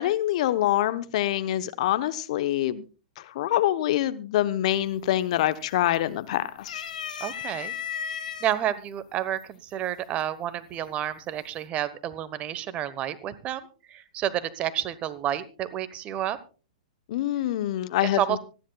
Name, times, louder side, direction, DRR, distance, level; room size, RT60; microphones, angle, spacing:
voice 1, 0.0-2.8 3.3-6.8 17.1-18.4, left 13 dB, 55° left, 13 dB, 0.8 m, -25 dB
sound 1, 4.7-5.2 5.5-6.2 6.6-8.5 9.4-9.5 10.7-11.2, left 8 dB, 75° left, 1.4 m, -35 dB
voice 2, 7.2-7.7 8.4-13.6 13.9-16.4 18.0-18.4, right 11 dB, 30° right, 15 dB, 1.0 m, -30 dB
25.0 x 10.0 x 2.3 m, 0.34 s
hypercardioid pair, 115°, 4 cm